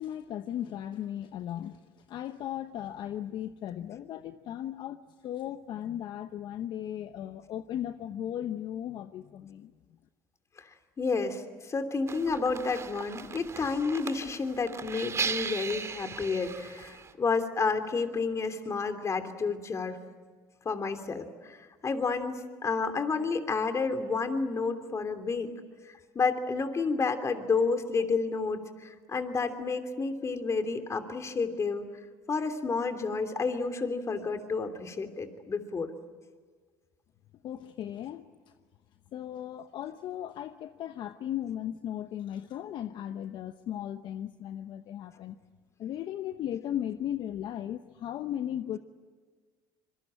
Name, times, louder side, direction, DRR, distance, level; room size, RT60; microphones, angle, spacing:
voice 1, 0.0-9.7 37.4-38.3 39.1-45.4 45.8-48.8, left 11 dB, 60° left, 10 dB, 0.9 m, -36 dB
voice 2, 11.0-20.0 20.6-25.5 25.9-31.9 32.3-35.9, left 4 dB, 35° left, 8 dB, 3.0 m, -30 dB
sound 1, 12.1-17.1, right 5 dB, 30° right, 2.1 m, -37 dB
26.5 x 22.5 x 8.9 m, 1.5 s
supercardioid pair, 80°, 9 cm